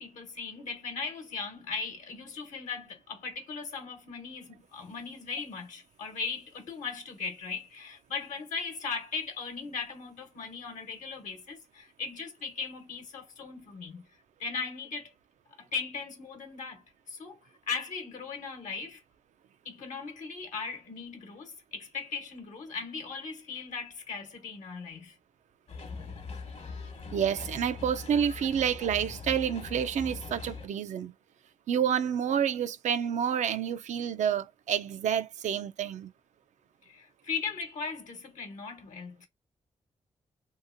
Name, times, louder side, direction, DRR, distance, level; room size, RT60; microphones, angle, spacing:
voice 1, 0.0-14.0 14.4-15.1 15.6-19.0 19.6-25.1 36.9-39.3, left 5 dB, 85° left, 1.1 m, -38 dB
sound 1, 25.7-30.7, left 4 dB, 60° left, 1.0 m, -41 dB
voice 2, 27.1-31.1 31.7-36.1, right 8 dB, 75° right, 0.4 m, -29 dB
2.8 x 2.7 x 2.5 m
cardioid pair, 55°, 12 cm